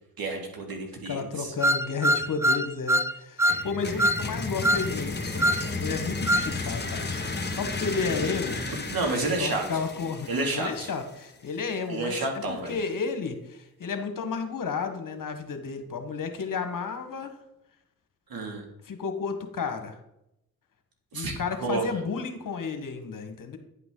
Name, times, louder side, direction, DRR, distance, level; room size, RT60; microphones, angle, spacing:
voice 1, 0.2-1.5 8.9-9.6 10.3-10.9 11.9-12.8 18.3-18.6 21.1-21.3 21.6-21.8, right 2 dB, 60° right, 1 dB, 2.4 m, -30 dB
voice 2, 1.0-7.2 7.5-8.6 9.4-12.2 12.5-17.4 18.8-19.9 21.1-23.6, left 5 dB, 50° left, 7 dB, 1.4 m, -32 dB
sound 1, 1.6-3.1 3.4-3.6 4.0-4.2 4.6-4.9 5.4-5.6 6.3-6.5, equal, 5° right, 0.5 m, -23 dB
sound 2, 3.5-11.2, left 3 dB, 25° left, 1.6 m, -33 dB
9.9 x 5.8 x 3.8 m, 0.84 s
supercardioid pair, 55°, 40 cm